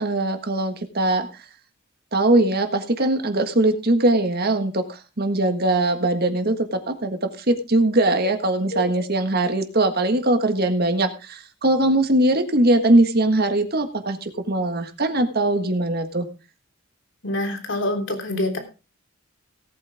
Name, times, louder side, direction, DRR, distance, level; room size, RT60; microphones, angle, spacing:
voice 1, 0.0-1.4 2.1-16.3, right 2 dB, 50° right, 7 dB, 1.6 m, -21 dB
voice 2, 17.2-18.6, left 1 dB, 65° left, 4 dB, 3.3 m, -26 dB
17.5 x 8.8 x 3.6 m, 0.31 s
head